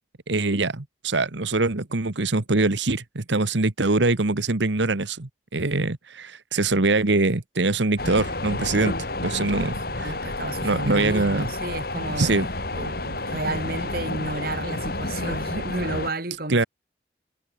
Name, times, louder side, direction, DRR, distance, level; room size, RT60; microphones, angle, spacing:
voice 1, 0.3-8.9 9.2-10.2 10.6-11.5 12.2-12.5 16.5-16.6, right 3 dB, 70° right, 1.3 m, -23 dB
sound 1, 8.0-16.1, left 2 dB, 50° left, 4.3 m, -30 dB
voice 2, 9.4-12.3 12.8-16.7, right 2 dB, 50° right, 2.2 m, -32 dB
head